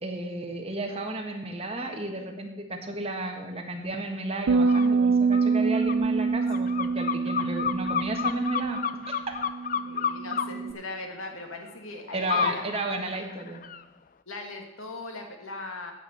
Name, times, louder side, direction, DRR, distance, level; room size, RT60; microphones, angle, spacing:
voice 1, 0.0-8.8 9.1-9.2 12.1-13.6, right 2 dB, 30° right, 3 dB, 1.4 m, -33 dB
sound 1, 4.5-10.7, right 4 dB, 70° right, 0.4 m, -26 dB
sound 2, 4.7-4.9 5.3-10.5 12.3-12.6 13.0-13.8, left 7 dB, 40° left, 0.4 m, -30 dB
voice 2, 9.8-12.8 14.3-15.9, left 2 dB, 80° left, 3 dB, 1.6 m, -39 dB
9.4 x 7.2 x 7.9 m, 1.1 s
head